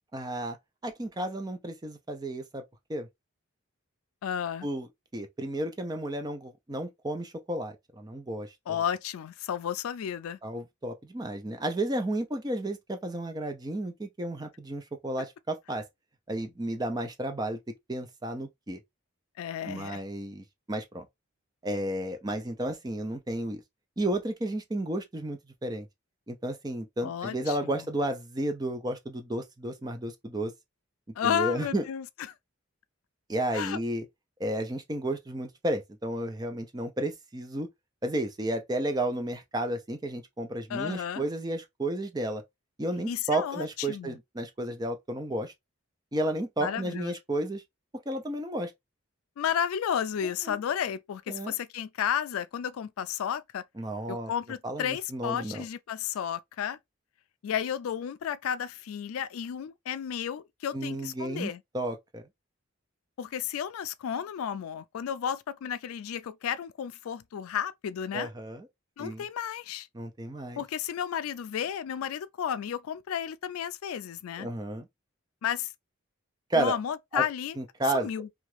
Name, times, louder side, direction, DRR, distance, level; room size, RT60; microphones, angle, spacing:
voice 1, 0.1-0.6 0.8-2.6 2.9-3.1 4.6-8.5 10.4-15.8 16.3-17.6 17.9-18.8 19.7-21.1 21.6-23.6 24.0-25.9 26.3-30.5 31.2-31.8 33.3-34.0 34.4-37.7 38.0-42.4 42.8-45.5 46.1-47.6 48.1-48.7 50.2-50.6 51.3-51.5 53.8-54.3 54.6-55.6 60.7-62.2 68.1-68.7 69.0-69.2 69.9-70.6 74.4-74.9 76.5-76.7 77.1-77.2 77.6-78.1, right 1 dB, 20° right, 0.4 m, -32 dB
voice 2, 4.2-4.7 8.7-10.4 19.4-20.0 27.0-27.8 31.2-32.1 33.5-33.8 40.7-41.2 43.1-44.2 46.6-47.2 49.4-53.6 54.1-56.8 57.4-61.6 63.2-68.3 69.0-69.9 70.6-74.5 75.4-75.7 76.5-77.6 77.9-78.3, left 8 dB, 90° left, 0.3 m, -32 dB
2.8 x 2.4 x 3.1 m
head